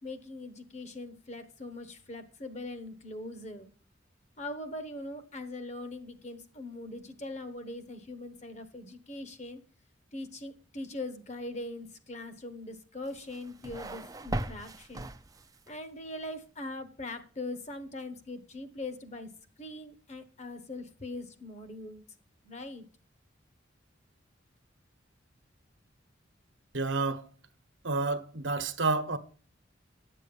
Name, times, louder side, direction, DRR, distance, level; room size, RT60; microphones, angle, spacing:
voice 1, 0.0-3.7 4.4-9.6 10.1-15.1 15.7-19.3 19.6-22.0 22.4-22.8, left 2 dB, 35° left, 1.1 m, -41 dB
sound 1, 13.1-15.7, right 1 dB, 20° right, 0.4 m, -38 dB
voice 2, 26.7-27.2 27.8-29.2, right 3 dB, 75° right, 1.1 m, -29 dB
10.5 x 7.6 x 5.4 m
head